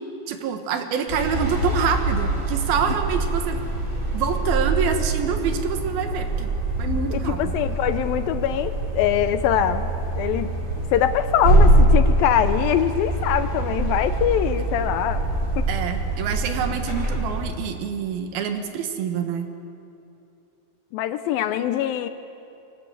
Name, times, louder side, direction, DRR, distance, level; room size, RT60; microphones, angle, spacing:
voice 1, 0.3-3.6 4.1-6.5 6.8-7.5 15.7-19.5, right 7 dB, 75° right, 7 dB, 3.2 m, -26 dB
sound 1, 1.1-17.4, right 1 dB, 25° right, 5.4 m, -23 dB
voice 2, 7.1-9.9 10.2-10.5 10.9-15.2 15.6-15.7 20.9-22.1, left 10 dB, 80° left, 11 dB, 2.3 m, -23 dB
23.0 x 18.5 x 8.2 m, 2.8 s
omnidirectional pair, 4.5 m